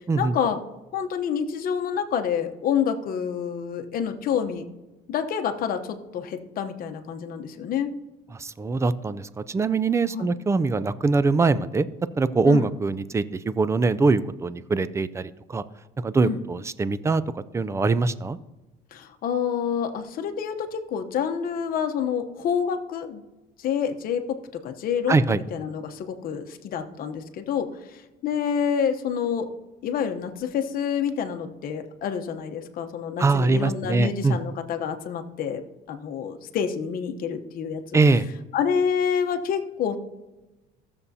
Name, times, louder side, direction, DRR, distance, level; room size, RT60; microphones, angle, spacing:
voice 1, 0.1-0.6 0.9-4.7 5.1-7.9 10.1-10.3 12.4-12.7 16.2-16.4 18.9-23.2 23.6-29.5 29.8-35.6 35.9-38.0 38.5-40.0, left 7 dB, 50° left, 6 dB, 0.9 m, -28 dB
voice 2, 8.4-11.9 12.2-15.6 16.0-18.4 25.1-25.4 33.2-34.4 37.9-38.3, right 3 dB, 15° right, 16 dB, 0.4 m, -23 dB
15.0 x 6.9 x 2.8 m, 1.1 s
cardioid pair, 115°, 19 cm